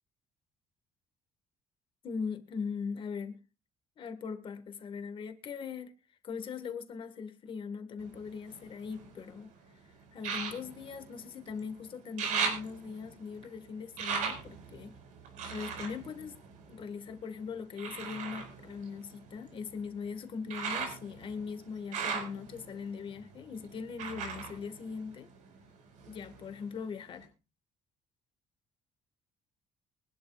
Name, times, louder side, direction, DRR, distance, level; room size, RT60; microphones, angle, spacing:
voice 1, 2.0-3.4 4.0-5.9 6.2-9.5 10.1-14.9 15.5-16.4 16.7-25.3 26.1-27.3, left 5 dB, 40° left, 1.6 m, -40 dB
sound 1, 8.0-9.4 10.2-11.7 12.0-17.1 17.8-25.6 25.9-26.8 27.2-27.3, right 6 dB, 80° right, 4.8 m, -39 dB
24.0 x 11.0 x 2.4 m
cardioid pair, 160°, 13 cm